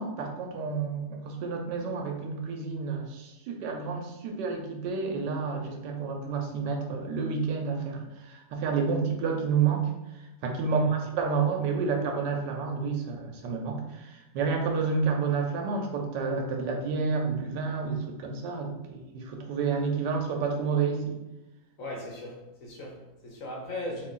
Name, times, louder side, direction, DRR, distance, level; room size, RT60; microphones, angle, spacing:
voice 1, 0.0-9.9 10.4-21.1, right 5 dB, 85° right, 3 dB, 1.3 m, -30 dB
voice 2, 21.8-24.1, left 1 dB, 60° left, -1 dB, 1.0 m, -38 dB
3.0 x 2.5 x 3.6 m, 0.98 s
omnidirectional pair, 1.8 m